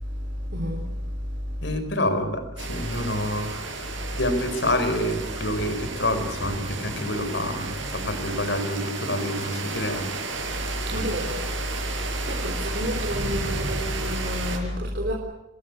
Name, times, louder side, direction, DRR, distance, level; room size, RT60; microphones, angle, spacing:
voice 1, 0.0-1.8 10.7-15.1, equal, 55° right, 3.8 m, -29 dB
voice 2, 1.6-3.9 4.2-10.1 10.9-11.0, left 1 dB, 60° left, 4.5 m, -27 dB
sound 1, 2.6-14.6, right 3 dB, 70° right, 6.1 m, -33 dB
27.5 x 19.5 x 8.2 m
head